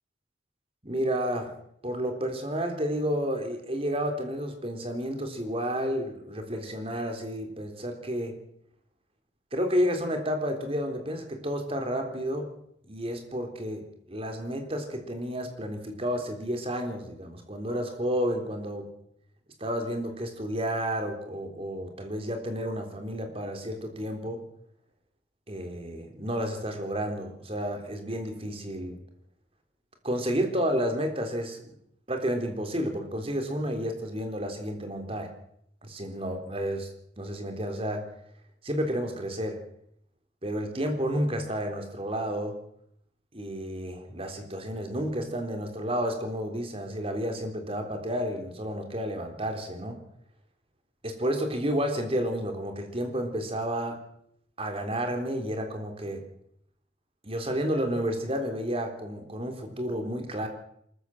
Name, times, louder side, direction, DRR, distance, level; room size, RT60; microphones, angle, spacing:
voice 1, 0.8-1.5 1.8-8.4 9.5-12.5 12.9-18.9 19.6-24.4 25.5-29.0 30.0-31.8 32.1-35.3 35.8-36.9 37.2-38.1 38.6-39.6 40.4-42.6 43.3-50.0 51.0-54.0 54.6-56.2 57.2-60.5, equal, 30° right, 5 dB, 3.7 m, -31 dB
23.5 x 14.0 x 7.7 m, 0.71 s
head